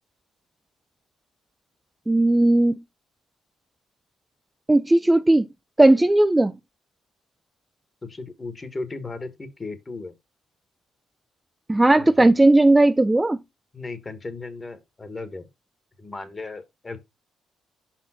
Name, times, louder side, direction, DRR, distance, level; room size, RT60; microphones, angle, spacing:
voice 1, 2.1-2.8 4.7-5.5 5.8-6.5 11.7-13.4, right 2 dB, 15° right, 0.4 m, -16 dB
voice 2, 8.0-10.1 12.0-12.3 13.7-15.5 16.0-17.0, left 3 dB, 25° left, 1.3 m, -36 dB
5.4 x 4.3 x 4.2 m
cardioid pair, 90°, 0 cm